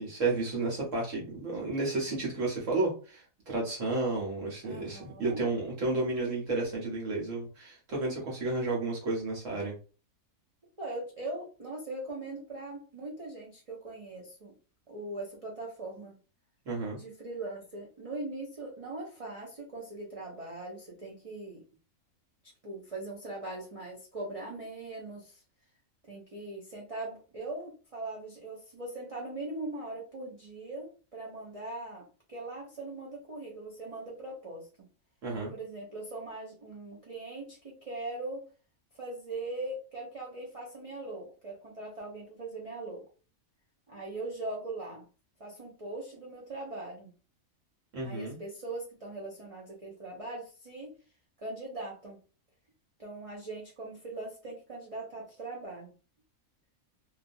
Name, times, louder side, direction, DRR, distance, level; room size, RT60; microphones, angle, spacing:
voice 1, 0.0-9.8 16.6-17.0 35.2-35.5 47.9-48.4, right 3 dB, 65° right, -3 dB, 1.2 m, -32 dB
voice 2, 4.6-5.4 10.8-14.5 14.9-16.1 16.9-21.6 22.6-25.4 26.1-34.7 35.5-38.4 39.0-43.0 43.9-45.0 45.4-47.1 48.0-51.0 51.4-52.2 53.0-55.9, right 2 dB, 45° right, -4 dB, 0.4 m, -40 dB
2.6 x 2.3 x 2.6 m, 0.36 s
omnidirectional pair, 1.5 m